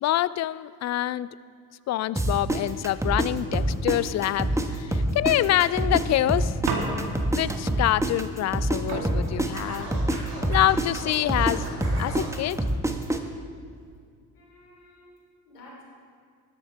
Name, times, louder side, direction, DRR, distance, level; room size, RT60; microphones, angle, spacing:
voice 1, 0.0-1.3 1.9-6.6 7.4-9.9 10.5-11.6 12.0-12.6, left 13 dB, 40° left, 18 dB, 0.4 m, -26 dB
sound 1, 2.2-4.7 4.9-8.8 9.0-13.2, right 1 dB, 5° right, 1.3 m, -25 dB
sound 2, 6.7-7.4 8.5-8.6 8.9-10.4 11.1-11.6, right 3 dB, 60° right, 2.2 m, -32 dB
Scratching (performance technique), 9.5-12.3, right 1 dB, 85° right, 2.5 m, -39 dB
voice 2, 14.3-15.9, left 1 dB, 75° left, -3 dB, 3.5 m, -51 dB
20.5 x 9.7 x 3.5 m, 2.2 s
figure-of-eight pair, 40°, 47 cm